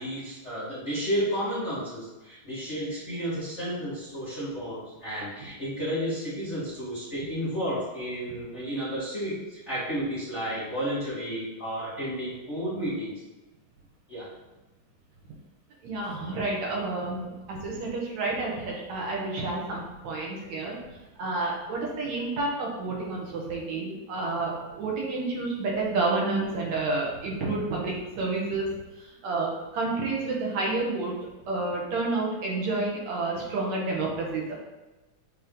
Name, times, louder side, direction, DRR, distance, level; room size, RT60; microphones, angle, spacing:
voice 1, 0.0-13.1 14.1-14.3, equal, 30° left, -10 dB, 1.3 m, -32 dB
voice 2, 15.8-31.1 31.5-34.6, right 3 dB, 65° right, -3 dB, 2.4 m, -30 dB
8.6 x 3.2 x 3.7 m, 1.1 s
omnidirectional pair, 3.5 m